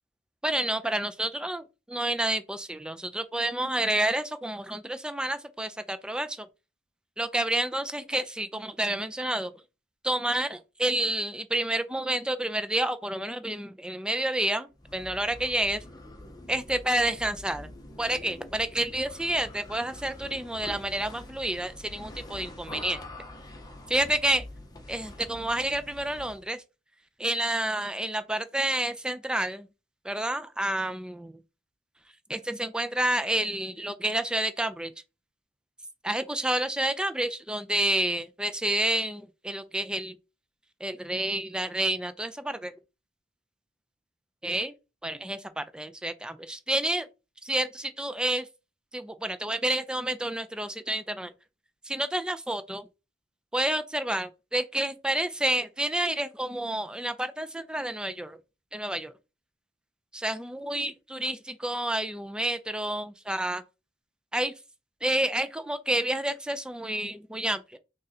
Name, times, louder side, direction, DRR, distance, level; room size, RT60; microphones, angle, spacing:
voice 1, 0.4-6.5 7.2-9.5 10.0-15.8 16.5-17.7 18.0-23.0 23.9-24.4 24.9-26.6 27.2-29.7 30.0-31.4 32.3-34.9 36.0-40.1 40.8-42.7 44.4-44.7 45.0-47.1 47.5-48.5 48.9-51.3 51.9-52.9 53.5-58.4 58.7-59.1 60.1-63.6 64.3-64.5 65.0-67.8, right 1 dB, 5° right, 0.3 m, -29 dB
sound 1, 14.7-26.5, left 1 dB, 20° left, 0.7 m, -45 dB
3.6 x 2.7 x 4.0 m
head